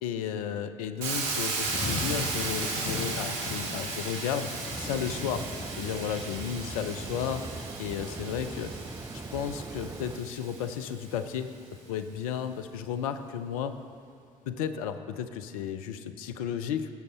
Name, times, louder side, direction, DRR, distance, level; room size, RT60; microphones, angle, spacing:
voice 1, 0.0-5.5 5.8-8.7 9.3-11.5 11.9-13.8 14.5-16.9, left 8 dB, 80° left, 9 dB, 0.6 m, -33 dB
Hiss, 1.0-10.9, right 3 dB, 70° right, 1.6 m, -35 dB
Thunder / Rain, 1.2-12.1 12.6-13.0, left 3 dB, 45° left, 1.2 m, -42 dB
sound 1, 4.7-10.2, right 3 dB, 20° right, 0.6 m, -41 dB
16.5 x 6.5 x 4.2 m, 2.1 s
hypercardioid pair, 55°, 18 cm